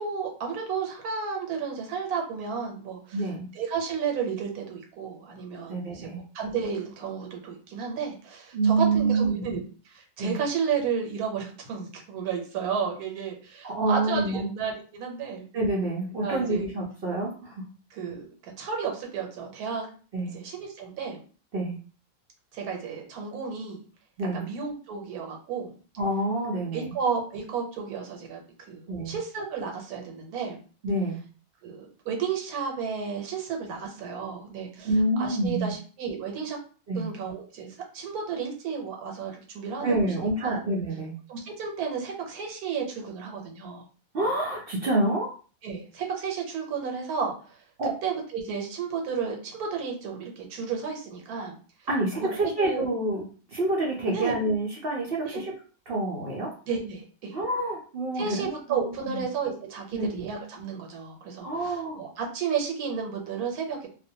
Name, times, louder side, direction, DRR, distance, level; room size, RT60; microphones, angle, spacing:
voice 1, 0.0-3.3 3.5-6.1 6.3-15.4 16.2-16.7 17.9-19.9 20.3-21.2 22.5-23.8 24.3-25.7 26.7-28.4 28.7-30.6 31.6-34.9 35.2-36.6 37.0-37.7 37.9-40.1 40.4-40.6 41.3-43.9 45.6-47.3 48.0-51.5 52.6-52.8 54.1-54.3 55.2-55.4 56.7-57.4 58.2-63.9, right 6 dB, 90° right, 2 dB, 1.2 m, -32 dB
voice 2, 3.1-3.5 5.7-6.2 8.5-9.3 10.2-10.4 13.6-14.5 15.5-17.7 20.1-20.3 21.5-21.8 24.2-24.4 26.0-26.9 28.9-29.2 30.8-31.2 34.8-35.7 36.9-37.1 39.8-41.2 44.1-45.3 47.8-47.9 51.9-55.5 55.9-56.5 57.3-59.2 59.9-60.2 61.4-62.0, right 2 dB, 65° right, -3 dB, 0.6 m, -27 dB
2.5 x 2.1 x 2.6 m, 0.39 s
omnidirectional pair, 1.5 m